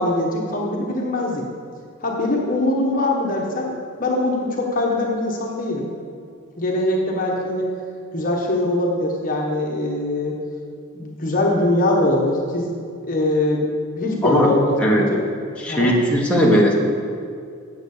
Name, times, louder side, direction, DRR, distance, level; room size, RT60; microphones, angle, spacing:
voice 1, 0.0-1.4 2.0-5.9 6.6-7.7 8.1-10.3 10.9-12.7 13.0-13.7 14.0-15.2 15.7-15.9, left 1 dB, 40° left, -2 dB, 1.3 m, -22 dB
voice 2, 14.2-14.5 14.8-15.1 15.6-16.9, equal, 5° left, -3 dB, 1.2 m, -17 dB
9.2 x 7.7 x 6.7 m, 2.3 s
head